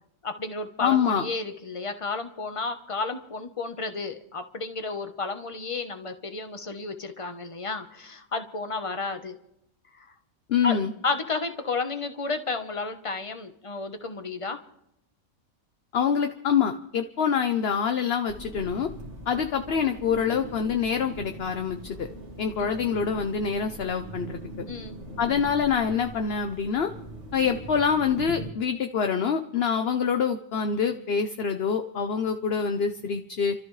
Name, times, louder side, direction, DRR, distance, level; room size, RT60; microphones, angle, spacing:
voice 1, 0.2-9.4 10.0-10.1 10.6-10.8 11.0-14.6 22.6-22.7 24.7-25.0, left 3 dB, 25° left, 7 dB, 1.1 m, -32 dB
voice 2, 0.8-1.3 10.5-10.9 15.9-18.9 19.3-22.1 22.4-24.4 25.2-26.9 27.3-33.5, left 6 dB, 50° left, 7 dB, 1.0 m, -25 dB
sound 1, 18.3-28.5, right 1 dB, 55° right, 2.2 m, -41 dB
29.5 x 13.5 x 3.3 m, 0.76 s
omnidirectional pair, 1.4 m